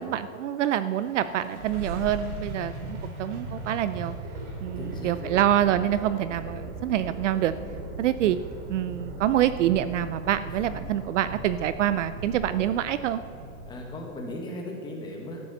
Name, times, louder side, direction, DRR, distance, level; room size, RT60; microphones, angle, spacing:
voice 1, 0.0-4.1 4.6-7.5 8.0-8.4 8.7-13.2, right 11 dB, 60° right, 13 dB, 0.5 m, -26 dB
sound 1, 0.9-14.0, right 1 dB, 75° right, 3.3 m, -38 dB
voice 2, 4.8-5.4 10.7-10.8 13.6-15.4, left 1 dB, 10° left, -1 dB, 1.4 m, -37 dB
12.5 x 8.6 x 5.4 m, 2.7 s
supercardioid pair, 160°, 43 cm